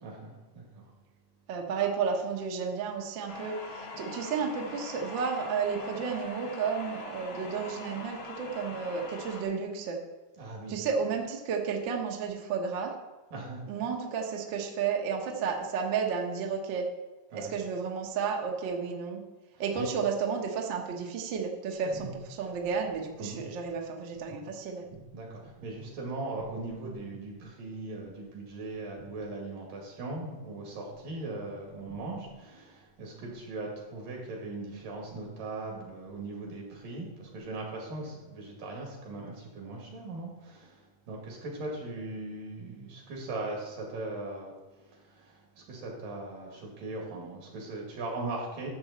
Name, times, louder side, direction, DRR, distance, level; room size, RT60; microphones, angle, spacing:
voice 1, 0.0-0.9 10.4-10.9 13.3-13.6 17.3-17.6 19.6-19.9 21.8-22.1 23.2-23.4 24.3-24.4 24.9-48.7, right 2 dB, 80° right, -1 dB, 4.0 m, -39 dB
voice 2, 1.5-10.0 10.7-12.9 13.7-16.8 17.3-19.2 19.6-22.1 22.4-24.8, right 6 dB, 60° right, 1 dB, 1.2 m, -32 dB
sound 1, 3.3-9.4, left 3 dB, 85° left, 3.3 m, -42 dB
12.5 x 7.0 x 4.2 m, 1.2 s
omnidirectional pair, 3.8 m